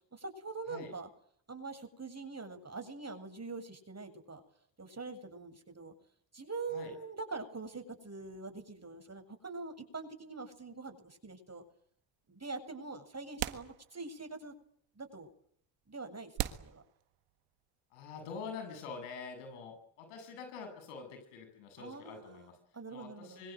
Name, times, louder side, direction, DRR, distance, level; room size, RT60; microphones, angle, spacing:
voice 1, 0.1-1.1 1.5-4.4 4.8-5.9 6.3-11.6 12.3-14.5 15.0-15.3 15.9-16.8 21.8-22.5 22.7-23.4, right 4 dB, 30° right, 6 dB, 7.6 m, -44 dB
sound 1, 11.5-11.6 12.8-12.9 13.4-14.3 14.6-14.7 15.5-15.6 16.4-17.6, right 15 dB, 80° right, 1.8 m, -39 dB
voice 2, 17.9-22.6 22.9-23.5, left 5 dB, 85° left, 6 dB, 7.8 m, -46 dB
25.5 x 24.0 x 8.0 m, 0.64 s
hypercardioid pair, 45°, 50 cm